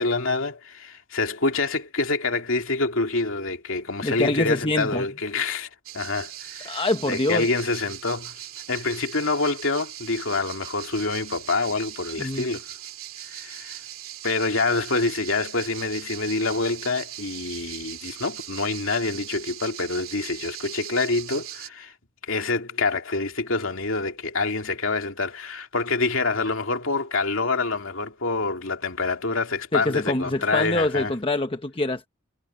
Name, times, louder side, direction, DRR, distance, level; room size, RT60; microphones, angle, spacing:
voice 1, 0.0-5.7 5.9-8.4 8.7-12.6 13.3-13.8 14.2-21.9 22.2-31.1, left 3 dB, 65° left, 2.7 m, -26 dB
voice 2, 4.0-5.0 6.6-7.5 12.2-12.5 29.7-32.1, left 2 dB, 25° left, 1.1 m, -25 dB
sound 1, 5.9-21.7, right 13 dB, 75° right, 2.7 m, -39 dB
head